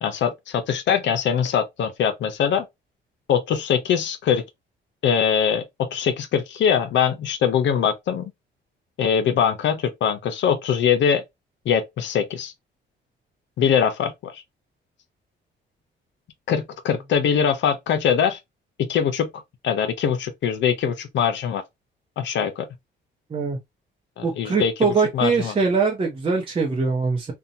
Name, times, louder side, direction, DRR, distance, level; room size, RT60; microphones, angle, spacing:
voice 1, 0.0-2.7 3.3-4.4 5.0-8.3 9.0-11.2 11.7-12.5 13.6-14.4 16.5-18.4 18.8-21.6 22.2-22.7 24.2-24.9 25.1-25.5, left 8 dB, 65° left, 0.6 m, -22 dB
voice 2, 24.2-27.3, right 4 dB, 25° right, 0.7 m, -22 dB
2.8 x 2.2 x 2.5 m
cardioid pair, 90°, 20 cm